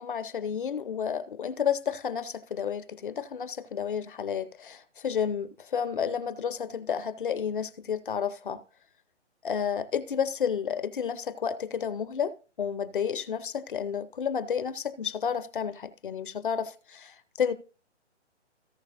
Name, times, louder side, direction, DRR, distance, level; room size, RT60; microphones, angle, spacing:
voice 1, 0.0-8.6 9.4-17.5, left 7 dB, 45° left, 0.7 m, -31 dB
17.5 x 6.0 x 2.6 m
hypercardioid pair, 165°, 36 cm